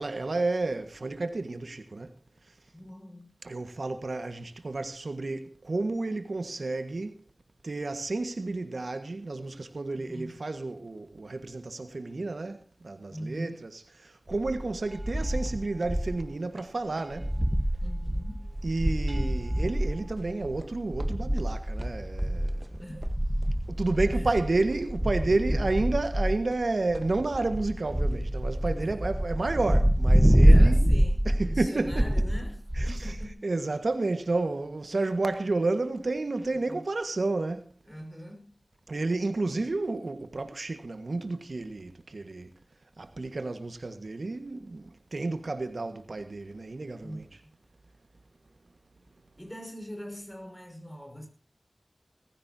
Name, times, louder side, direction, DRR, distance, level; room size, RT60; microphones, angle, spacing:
voice 1, 0.0-2.1 3.4-7.1 7.6-13.5 14.0-17.3 18.6-22.5 23.7-30.9 31.2-32.0 32.8-32.9 33.4-37.7 38.9-42.5 43.0-47.2, right 3 dB, 75° right, 1.6 m, -31 dB
voice 2, 2.7-3.3 9.9-10.4 13.1-13.6 17.8-18.5 22.8-23.0 23.6-23.7 24.1-24.3 28.6-29.1 30.4-33.5 36.7-36.8 37.9-38.5 47.0-47.3 49.4-51.3, equal, 15° left, 5.9 m, -42 dB
sound 1, 14.3-16.3 16.6-16.7 17.0-33.3, equal, 10° right, 1.3 m, -26 dB
19.5 x 15.0 x 2.8 m
wide cardioid pair, 55°, 0 cm